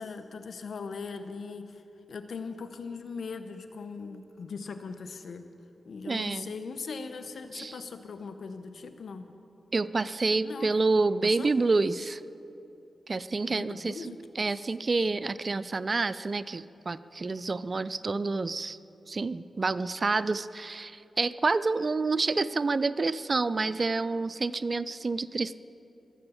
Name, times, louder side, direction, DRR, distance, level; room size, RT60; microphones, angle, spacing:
voice 1, 0.0-1.8 2.1-5.4 5.9-9.3 10.4-10.8 11.2-11.5 13.5-14.6, left 4 dB, 75° left, 9 dB, 0.9 m, -40 dB
voice 2, 6.1-6.5 7.5-7.8 9.7-12.2 13.1-18.8 19.1-25.6, right 3 dB, 45° right, 16 dB, 0.5 m, -28 dB
22.5 x 7.9 x 7.1 m, 2.9 s
cardioid pair, 45°, 0 cm